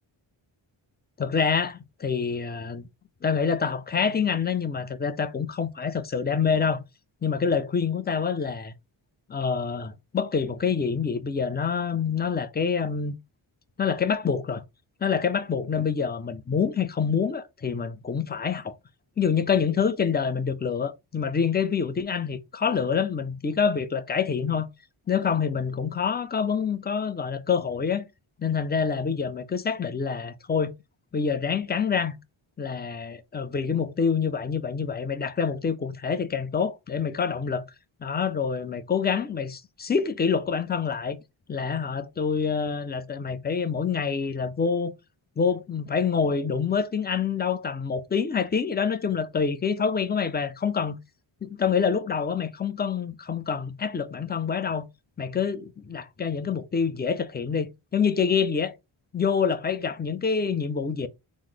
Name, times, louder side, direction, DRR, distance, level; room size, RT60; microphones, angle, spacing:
voice 1, 1.2-2.9 3.2-6.8 7.2-8.7 9.3-13.1 13.8-14.6 15.0-18.8 19.2-24.7 25.1-28.0 28.4-30.7 31.1-32.2 32.6-37.7 38.0-41.2 41.5-44.9 45.4-51.0 51.4-54.9 55.2-58.7 59.1-61.1, left 6 dB, 20° left, 0.4 m, -26 dB
3.8 x 2.0 x 3.1 m
cardioid pair, 60°, 49 cm